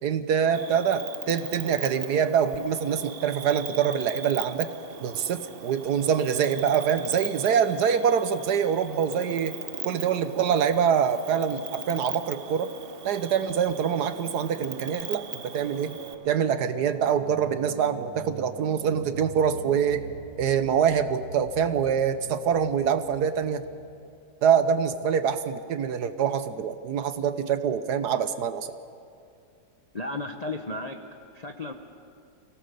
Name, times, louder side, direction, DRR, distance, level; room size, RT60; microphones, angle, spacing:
voice 1, 0.0-4.7 5.0-9.6 9.8-12.7 13.0-16.0 16.2-20.1 20.4-23.7 24.4-28.7, right 7 dB, 65° right, 11 dB, 1.3 m, -25 dB
Cricket, 0.5-16.1, right 6 dB, 45° right, 0.8 m, -39 dB
sound 1, 13.8-24.2, right 4 dB, 85° right, 1.7 m, -45 dB
voice 2, 29.9-31.0 31.3-31.7, left 2 dB, 40° left, 4 dB, 0.5 m, -33 dB
24.5 x 17.5 x 6.7 m, 2.5 s
omnidirectional pair, 2.0 m